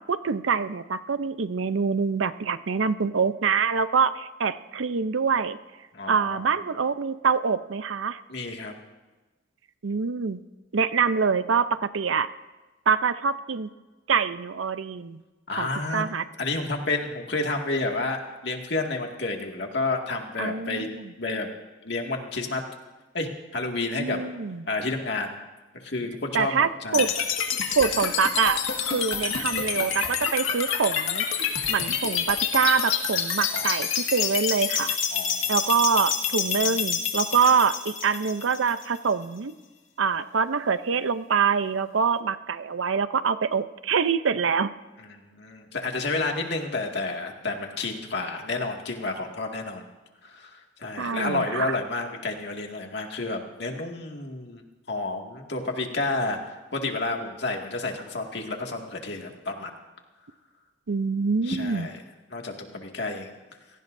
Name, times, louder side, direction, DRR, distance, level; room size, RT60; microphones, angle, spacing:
voice 1, 0.1-5.6 6.1-8.2 9.8-10.4 10.7-12.3 12.9-13.7 14.1-15.2 15.6-15.7 15.9-16.2 20.4-21.1 24.0-24.7 26.3-27.1 27.8-28.6 28.9-31.2 31.7-35.0 35.5-39.5 40.0-44.7 51.0-51.7 60.9-61.9, right 5 dB, 90° right, 13 dB, 0.6 m, -25 dB
voice 2, 5.9-6.5 8.3-8.7 15.5-16.0 16.4-20.9 21.2-21.5 21.8-22.6 23.1-24.2 24.7-25.3 25.8-27.1 33.5-33.8 35.1-35.5 45.0-49.9 50.2-54.6 54.9-59.7 61.4-62.0 62.3-63.3, left 3 dB, 60° left, 2 dB, 2.1 m, -30 dB
sound 1, 26.9-39.0, left 7 dB, 90° left, 2.0 m, -27 dB
27.5 x 18.0 x 2.7 m, 1.2 s
head